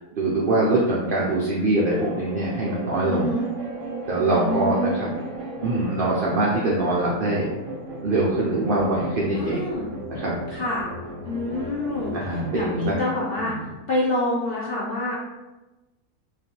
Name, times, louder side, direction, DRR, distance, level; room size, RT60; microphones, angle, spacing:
voice 1, 0.1-3.3 4.1-5.1 5.6-7.5 8.0-9.6 10.1-10.3 12.1-13.0 13.4-13.6, right 2 dB, 90° right, -5 dB, 0.4 m, -23 dB
sound 1, 1.9-12.9, right 2 dB, 55° right, 0.8 m, -35 dB
voice 2, 3.0-3.5 4.2-5.1 9.3-9.9 10.5-10.8 11.3-13.5 13.9-15.1, left 1 dB, 65° left, -6 dB, 0.5 m, -27 dB
2.4 x 2.3 x 2.8 m, 1.1 s
omnidirectional pair, 1.5 m